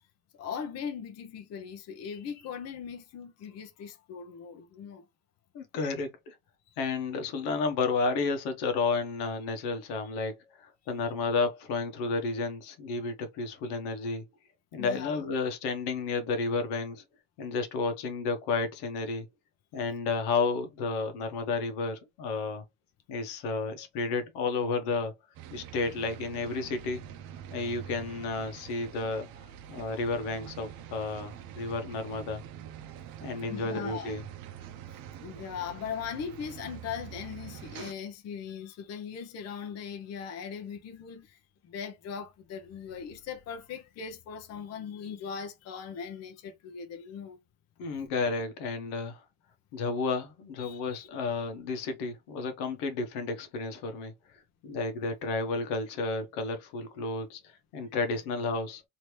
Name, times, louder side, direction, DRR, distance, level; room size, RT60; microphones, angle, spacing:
voice 1, 0.3-5.0 6.7-6.8 14.8-15.1 33.5-34.1 35.2-47.4 50.6-51.1, left 7 dB, 40° left, 0.7 m, -39 dB
voice 2, 5.5-6.4 6.8-14.2 14.7-17.0 17.4-19.2 19.7-22.6 23.1-25.1 25.5-27.0 27.5-29.3 29.7-32.4 33.2-34.2 47.8-49.2 49.7-54.1 54.6-58.8, left 4 dB, 80° left, 1.0 m, -32 dB
sound 1, 25.3-37.9, right 10 dB, 60° right, 0.7 m, -45 dB
2.9 x 2.9 x 3.1 m
cardioid pair, 130°, 39 cm